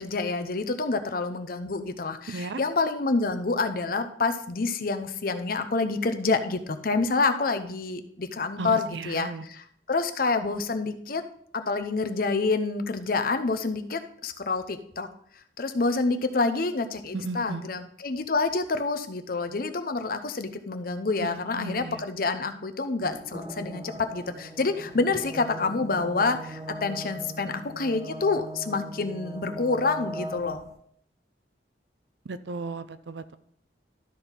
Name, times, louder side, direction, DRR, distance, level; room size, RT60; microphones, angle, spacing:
voice 1, 0.0-11.2 11.5-15.1 15.6-30.6, left 3 dB, 55° left, 9 dB, 0.7 m, -28 dB
voice 2, 2.3-2.6 8.6-9.4 17.1-17.6 21.2-22.0 32.3-33.4, right 3 dB, 80° right, 13 dB, 0.5 m, -35 dB
sound 1, 23.0-30.8, right 1 dB, 20° right, 0.9 m, -39 dB
12.0 x 4.5 x 3.8 m, 0.65 s
head